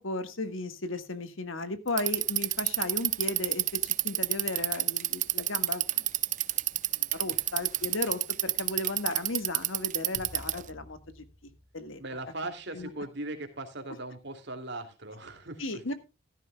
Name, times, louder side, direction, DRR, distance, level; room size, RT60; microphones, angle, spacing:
voice 1, 0.0-6.1 6.9-12.0 12.7-12.9 15.6-15.9, left 2 dB, 75° left, 10 dB, 1.6 m, -35 dB
Bicycle, 1.9-10.7, right 15 dB, 35° right, 0.5 m, -28 dB
sound 1, 10.1-12.6, equal, 70° right, 2.8 m, -51 dB
voice 2, 12.0-15.9, right 2 dB, 55° right, 6 dB, 2.6 m, -39 dB
15.0 x 13.0 x 2.2 m, 0.28 s
head